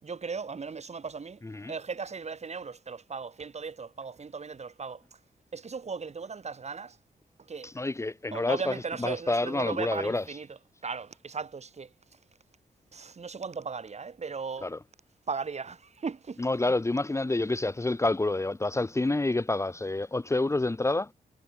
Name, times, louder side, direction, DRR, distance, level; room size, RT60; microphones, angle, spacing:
voice 1, 0.0-1.4 1.7-5.0 5.5-7.0 7.5-7.7 8.3-10.5 10.8-11.9 12.9-14.7 15.3-16.4, right 5 dB, 45° right, 6.5 m, -37 dB
voice 2, 1.4-1.7 7.6-10.4 14.6-14.8 16.4-21.1, left 2 dB, 20° left, 1.4 m, -28 dB
wide cardioid pair, 110°, 16 cm